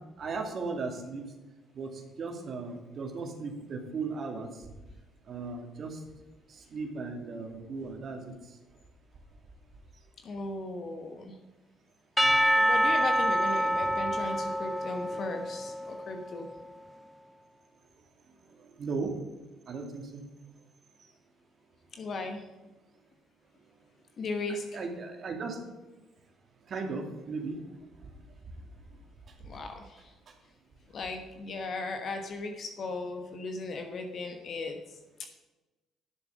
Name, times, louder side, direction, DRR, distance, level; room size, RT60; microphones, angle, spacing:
voice 1, 0.2-1.3 1.7-4.7 5.2-6.0 6.5-8.6 18.0-19.2 19.7-20.2 21.0-21.1 24.7-25.6 26.6-28.5 28.8-28.9 29.3-29.6 30.3-30.4, right 4 dB, 55° right, 3 dB, 2.3 m, -37 dB
voice 2, 10.2-11.4 12.6-16.5 21.9-22.4 24.2-24.8 29.4-30.1 30.9-35.3, left 3 dB, 55° left, 5 dB, 1.3 m, -37 dB
Percussion / Church bell, 12.2-16.3, equal, ahead, 0.5 m, -27 dB
11.0 x 7.1 x 6.3 m, 1.1 s
hypercardioid pair, 55°, 0 cm